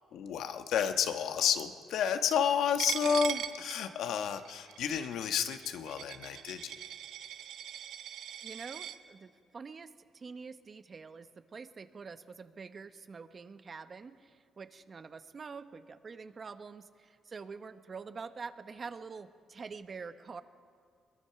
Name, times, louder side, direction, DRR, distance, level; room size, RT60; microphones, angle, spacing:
voice 1, 0.1-6.7, left 7 dB, 80° left, 7 dB, 1.2 m, -31 dB
Coin (dropping), 2.8-9.0, right 10 dB, 80° right, 0.9 m, -41 dB
voice 2, 8.4-20.4, right 5 dB, 40° right, 10 dB, 1.0 m, -46 dB
22.0 x 21.0 x 5.8 m, 2.2 s
cardioid pair, 90°, 0 cm